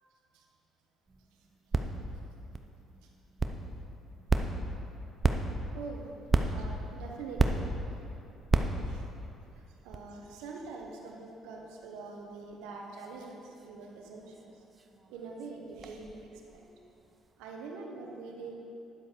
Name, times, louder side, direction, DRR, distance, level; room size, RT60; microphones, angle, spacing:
sound 1, 1.1-17.5, right 3 dB, 30° right, 0.7 m, -35 dB
voice 1, 5.7-6.1 6.5-7.7 8.9-9.0 9.8-14.5 15.1-16.2 16.5-16.6 17.4-18.6, right 4 dB, 90° right, 0 dB, 1.3 m, -44 dB
10.5 x 7.5 x 4.7 m, 2.8 s
supercardioid pair, 80°, 0 cm